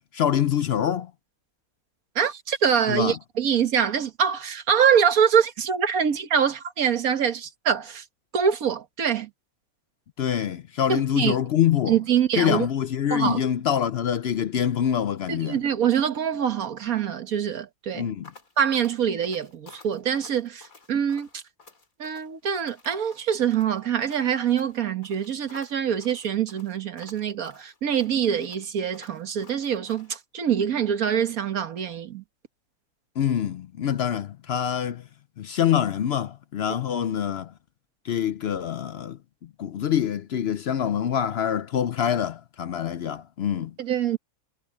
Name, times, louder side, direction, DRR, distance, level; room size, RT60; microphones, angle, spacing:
voice 1, 0.1-1.1 2.9-3.2 10.2-12.0 12.3-15.6 17.9-18.3 33.2-35.0 35.4-37.5 38.0-39.2 39.6-43.7, left 9 dB, 60° left, 0.7 m, -25 dB
voice 2, 2.2-8.0 8.3-9.3 10.9-11.3 11.9-12.7 13.1-13.4 15.3-18.1 18.6-21.4 22.0-32.2 43.8-44.2, right 8 dB, 85° right, 1.8 m, -24 dB
sound 1, 18.2-30.2, left 4 dB, 75° left, 3.8 m, -52 dB
omnidirectional pair, 1.4 m